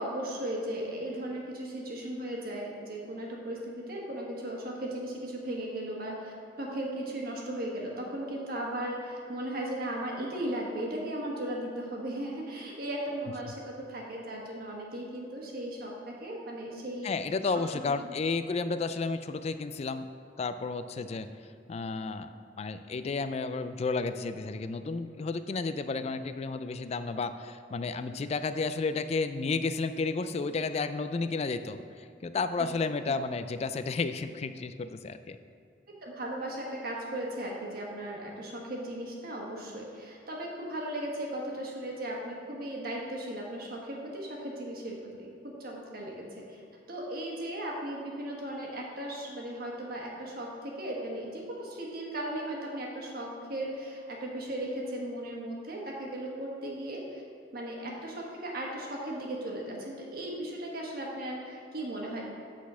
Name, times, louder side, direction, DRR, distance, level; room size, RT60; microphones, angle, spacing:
voice 1, 0.0-17.1 18.1-18.2 32.6-32.7 33.0-33.2 35.9-46.6 46.9-57.2 57.5-62.2, right 1 dB, 55° right, -2 dB, 1.4 m, -37 dB
voice 2, 17.0-20.1 20.4-21.3 21.7-35.4, left 4 dB, 35° left, 11 dB, 0.3 m, -32 dB
8.3 x 4.1 x 6.2 m, 2.5 s
head